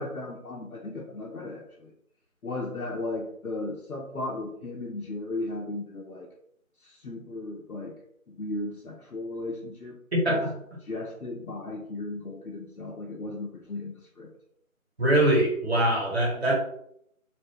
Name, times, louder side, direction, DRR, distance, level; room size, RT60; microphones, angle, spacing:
voice 1, 0.0-1.9 2.4-6.3 6.8-7.9 8.3-10.0 10.3-10.4 10.8-14.3 16.3-16.5, left 2 dB, 85° left, -2 dB, 0.7 m, -36 dB
voice 2, 10.1-10.5 15.0-16.5, right 1 dB, 50° right, -4 dB, 1.3 m, -23 dB
2.5 x 2.1 x 3.4 m, 0.70 s
figure-of-eight pair, 170°, 42 cm